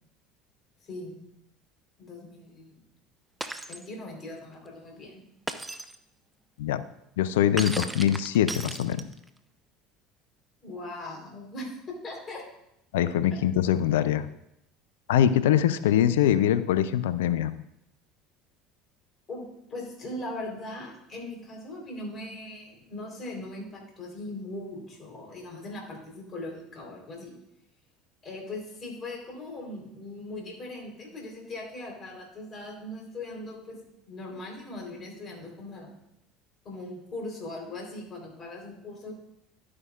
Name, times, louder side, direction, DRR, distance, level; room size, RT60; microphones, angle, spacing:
voice 1, 0.8-1.2 2.0-2.8 3.7-5.2 10.6-12.4 13.3-13.4 19.3-27.4 28.2-33.8 34.1-35.9 36.6-39.1, left 2 dB, 40° left, 0 dB, 3.7 m, -39 dB
Shatter, 3.4-3.8 5.5-6.0 7.6-9.3, right 2 dB, 10° right, 0.8 m, -35 dB
voice 2, 7.2-9.1 12.9-14.3 15.1-17.5, left 10 dB, 75° left, 13 dB, 0.4 m, -23 dB
11.0 x 9.7 x 2.4 m, 0.82 s
hypercardioid pair, 70°, 0 cm